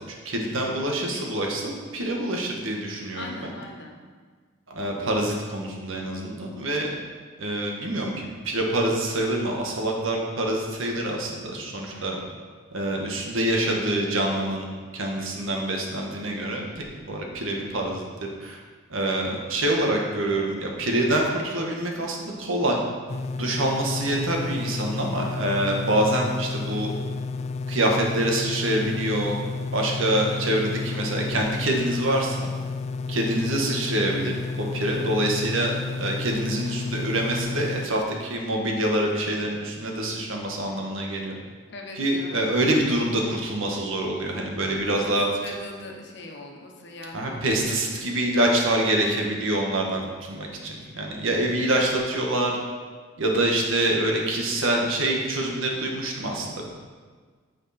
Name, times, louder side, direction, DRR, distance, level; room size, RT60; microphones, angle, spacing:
voice 1, 0.2-3.5 4.7-6.9 7.4-12.2 12.7-14.7 14.9-18.6 18.9-22.8 23.4-26.9 27.7-29.4 29.7-32.5 33.1-41.3 42.0-45.3 47.1-52.6 53.2-56.7, right 1 dB, 80° right, 0 dB, 1.6 m, -26 dB
voice 2, 3.1-4.0 11.8-12.3 23.4-23.8 41.7-42.4 44.9-47.8 49.9-50.2 50.8-51.1, left 2 dB, 60° left, 1 dB, 1.2 m, -41 dB
sound 1, 23.1-37.9, left 4 dB, 35° left, 0.3 m, -31 dB
8.9 x 7.4 x 4.4 m, 1.6 s
head